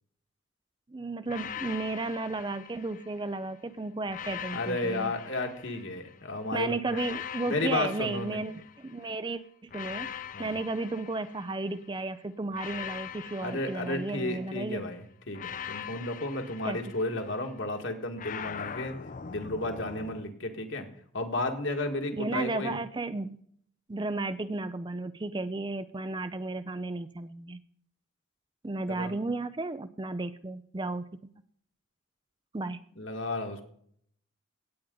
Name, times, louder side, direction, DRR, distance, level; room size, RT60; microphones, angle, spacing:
voice 1, 0.9-5.1 6.5-8.5 8.8-10.1 10.4-14.8 16.6-16.8 22.2-23.4 23.9-27.6 28.6-31.1 32.5-32.8, right 2 dB, 20° right, 13 dB, 0.4 m, -33 dB
sound 1, 1.3-3.4 4.1-6.2 6.9-9.1 9.7-11.9 12.5-14.7 15.3-17.5 18.2-20.2, left 8 dB, 40° left, 0.5 m, -42 dB
voice 2, 4.5-7.0 7.5-8.4 10.3-10.5 13.4-19.0 19.3-20.9 21.1-22.8 28.9-29.1 33.0-33.7, left 2 dB, 65° left, 4 dB, 1.8 m, -33 dB
17.0 x 9.2 x 3.9 m, 0.65 s
head